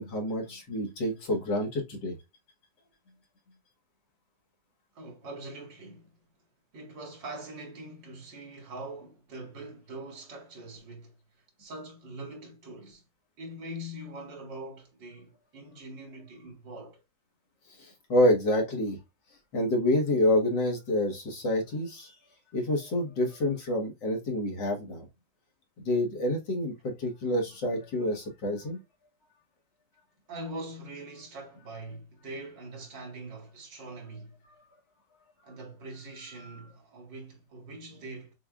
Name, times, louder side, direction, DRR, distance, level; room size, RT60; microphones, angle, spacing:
voice 1, 0.0-2.2 17.8-19.0 19.5-22.1 22.5-25.1 25.8-28.8 34.5-34.6 36.4-36.7, left 1 dB, 80° left, 2.0 m, -28 dB
voice 2, 5.0-6.1 6.7-11.1 11.6-13.0 13.4-17.0 30.3-34.3 35.4-38.3, right 1 dB, 85° right, 2.2 m, -43 dB
6.7 x 2.3 x 2.3 m
omnidirectional pair, 1.9 m